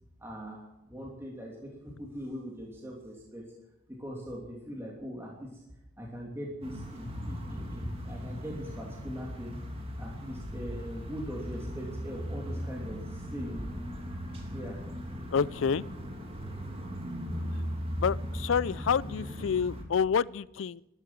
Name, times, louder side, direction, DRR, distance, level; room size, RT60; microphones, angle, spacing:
voice 1, 0.2-3.4 4.0-5.5 6.0-9.6 9.9-13.7 14.5-14.8 17.9-18.0 18.3-18.4, equal, 15° right, -3 dB, 2.9 m, -40 dB
sound 1, 6.6-19.8, equal, 30° right, 2.7 m, -38 dB
voice 2, 15.3-15.8 18.0-20.8, left 6 dB, 80° left, 23 dB, 0.4 m, -28 dB
13.0 x 13.0 x 7.5 m, 0.93 s
head